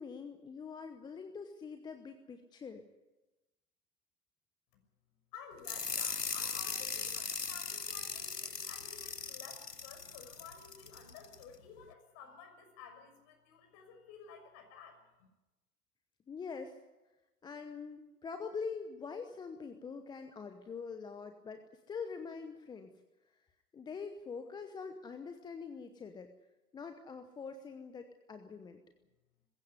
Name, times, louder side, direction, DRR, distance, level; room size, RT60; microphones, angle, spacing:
voice 1, 0.0-2.8 16.3-16.8 17.4-22.9 23.3-23.4 23.7-26.3 26.7-28.8, left 5 dB, 10° left, 7 dB, 0.9 m, -44 dB
voice 2, 5.3-15.3, left 6 dB, 35° left, 5 dB, 6.4 m, -53 dB
sound 1, 5.6-11.4, left 5 dB, 90° left, 1.2 m, -39 dB
21.5 x 16.0 x 9.8 m, 1.1 s
figure-of-eight pair, 110°, 47 cm